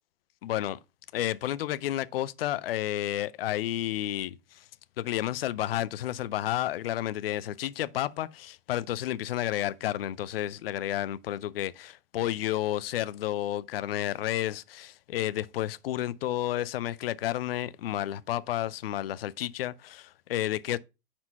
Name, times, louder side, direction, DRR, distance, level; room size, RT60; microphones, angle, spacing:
voice 1, 0.4-0.8 1.1-4.6 5.0-8.3 8.7-20.8, left 13 dB, 40° left, 0.5 m, -31 dB
9.4 x 4.4 x 5.6 m
figure-of-eight pair, 110°, 46 cm